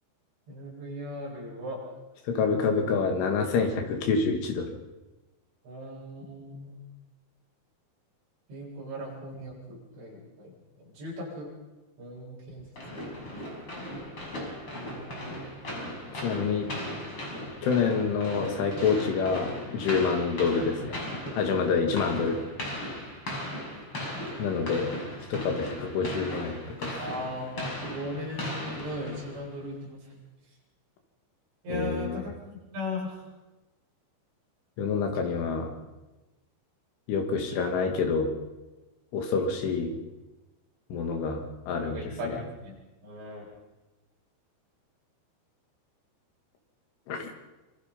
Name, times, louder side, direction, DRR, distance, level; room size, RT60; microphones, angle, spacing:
voice 1, 0.5-1.8 5.6-6.8 8.5-10.5 10.8-11.5 12.0-12.7 14.7-15.6 27.0-30.0 31.6-33.2 41.8-43.5, left 1 dB, 65° right, -5 dB, 9.8 m, -38 dB
voice 2, 2.3-4.7 16.1-16.7 17.6-21.0 21.4-22.4 24.4-24.9 25.3-27.0 31.7-32.3 34.8-35.7 37.1-38.3 39.1-40.0 40.9-42.4 47.1-47.2, left 5 dB, 85° left, 4 dB, 4.9 m, -27 dB
sound 1, 12.8-29.5, left 1 dB, 30° left, 6.9 m, -37 dB
26.0 x 25.5 x 5.5 m, 1.1 s
omnidirectional pair, 5.4 m